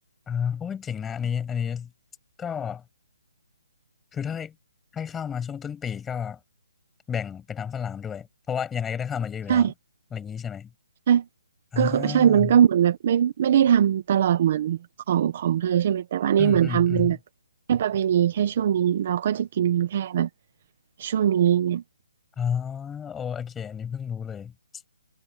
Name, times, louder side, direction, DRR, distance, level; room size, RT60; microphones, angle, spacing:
voice 1, 0.3-1.9 2.4-2.8 4.1-4.5 4.9-6.4 7.1-9.7 10.1-10.7 11.7-12.6 16.4-17.2 22.4-24.5, left 7 dB, 5° left, 6.3 m, -31 dB
voice 2, 11.8-14.8 15.1-17.2 17.7-20.3 21.0-21.8, right 9 dB, 30° right, 0.9 m, -21 dB
hypercardioid pair, 175°, 0 cm